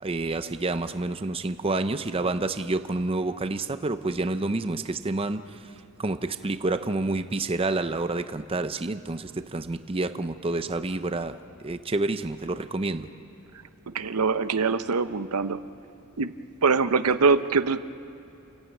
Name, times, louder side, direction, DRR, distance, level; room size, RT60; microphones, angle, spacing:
voice 1, 0.0-5.7 6.0-13.1, right 2 dB, 25° right, 10 dB, 0.6 m, -29 dB
voice 2, 13.9-15.6 16.2-16.3 16.6-17.8, right 4 dB, 90° right, 12 dB, 0.8 m, -23 dB
29.0 x 14.5 x 9.0 m, 2.8 s
head